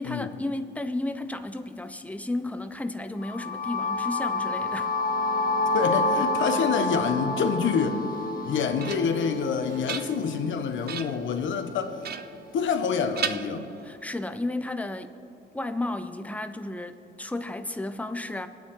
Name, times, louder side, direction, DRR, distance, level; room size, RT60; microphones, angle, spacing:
voice 1, 0.0-4.9 13.8-15.1 15.5-18.5, left 2 dB, 5° left, 8 dB, 0.8 m, -33 dB
sound 1, 3.2-11.1, left 2 dB, 45° left, 1.4 m, -29 dB
voice 2, 5.7-8.0 8.4-12.0 12.5-13.7, left 6 dB, 75° left, 6 dB, 1.3 m, -27 dB
sound 2, 8.3-9.3 9.7-10.5 10.9-11.3 12.0-12.9 13.2-14.1, right 8 dB, 55° right, 0.6 m, -36 dB
23.0 x 9.3 x 3.8 m, 2.6 s
cardioid pair, 90°, 20 cm